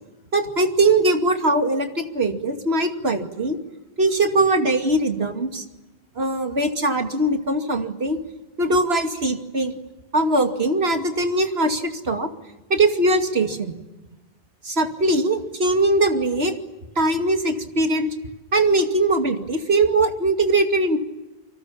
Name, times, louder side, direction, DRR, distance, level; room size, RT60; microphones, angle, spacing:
voice 1, 0.3-3.6 4.0-5.6 6.2-8.2 8.6-9.7 10.1-12.3 12.7-13.7 14.6-16.5 17.0-18.1 18.5-21.0, right 2 dB, 80° right, 5 dB, 2.8 m, -21 dB
28.5 x 25.5 x 7.3 m, 1.1 s
omnidirectional pair, 1.1 m